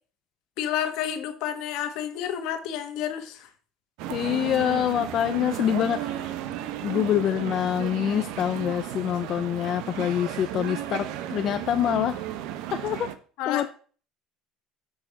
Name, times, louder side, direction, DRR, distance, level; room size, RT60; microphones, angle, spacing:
voice 1, 0.6-3.5 13.4-13.6, left 10 dB, 65° left, 8 dB, 1.2 m, -30 dB
sound 1, 4.0-13.1, right 12 dB, 70° right, 0.8 m, -34 dB
voice 2, 4.1-6.4 6.8-12.2 12.7-13.1 13.5-13.7, left 10 dB, 45° left, 9 dB, 0.4 m, -26 dB
6.2 x 4.5 x 6.2 m, 0.42 s
cardioid pair, 140°, 0 cm